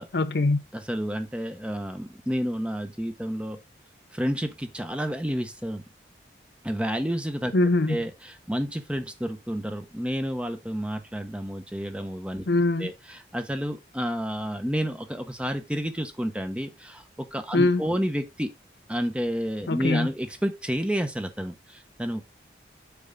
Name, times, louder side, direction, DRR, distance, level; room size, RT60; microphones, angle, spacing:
voice 1, 0.1-0.6 7.5-8.0 12.5-12.9 17.5-17.8 19.7-20.1, left 2 dB, 75° left, 0.7 m, -22 dB
voice 2, 0.7-3.6 4.1-5.8 6.6-7.5 7.9-12.4 12.8-18.5 18.9-22.2, equal, 5° right, 0.8 m, -30 dB
7.0 x 5.4 x 3.7 m
head